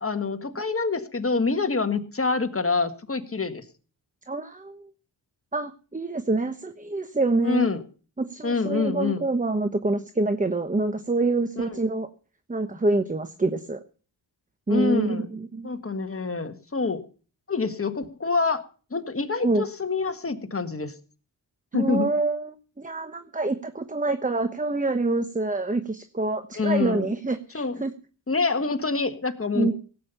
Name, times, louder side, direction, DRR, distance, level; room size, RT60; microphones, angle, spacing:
voice 1, 0.0-3.6 7.4-7.8 8.4-9.2 11.6-11.7 14.7-15.3 15.6-17.0 17.5-18.6 18.9-20.9 21.7-22.1 26.6-27.1 27.5-27.8 28.3-29.7, left 4 dB, 30° left, 8 dB, 1.7 m, -26 dB
voice 2, 4.3-4.8 5.5-7.7 8.2-12.1 12.5-13.8 14.7-15.7 19.4-19.6 21.7-27.9 29.5-29.7, right 2 dB, 20° right, 11 dB, 1.0 m, -26 dB
17.5 x 8.7 x 5.6 m, 0.39 s
cardioid pair, 75°, 43 cm